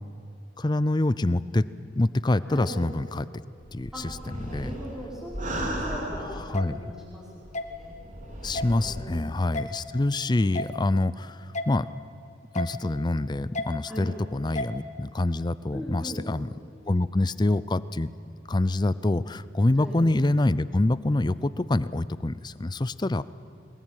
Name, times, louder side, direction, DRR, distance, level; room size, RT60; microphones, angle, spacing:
voice 1, 0.6-1.6 1.9-3.3 3.7-4.7 6.1-6.8 8.4-11.9 12.5-16.5 16.9-18.1 18.5-23.2, left 2 dB, 20° left, 17 dB, 0.5 m, -26 dB
sound 1, 3.6-6.8 7.4-9.2, right 1 dB, 40° right, 3.1 m, -36 dB
voice 2, 4.5-7.9 8.8-9.3 13.9-14.1 15.7-16.2 19.8-19.9, equal, 5° right, -7 dB, 4.9 m, -39 dB
sound 2, 6.5-6.7 7.5-7.7 8.5-8.7 9.5-9.7 10.5-10.7 11.5-11.7 12.5-12.7 13.5-13.7 14.6-14.7, left 1 dB, 40° left, 1.4 m, -31 dB
22.5 x 20.5 x 9.0 m, 2.5 s
head